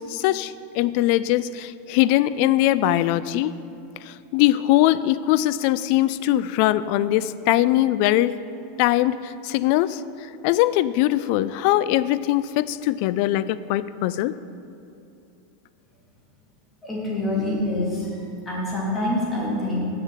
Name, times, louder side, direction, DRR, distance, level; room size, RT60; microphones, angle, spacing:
voice 1, 0.0-3.5 4.1-8.4 8.8-10.0 10.4-14.3, left 14 dB, 55° left, 16 dB, 0.3 m, -21 dB
voice 2, 16.8-19.9, left 1 dB, 15° left, -4 dB, 2.6 m, -26 dB
7.4 x 6.5 x 7.4 m, 2.7 s
supercardioid pair, 140°, 0 cm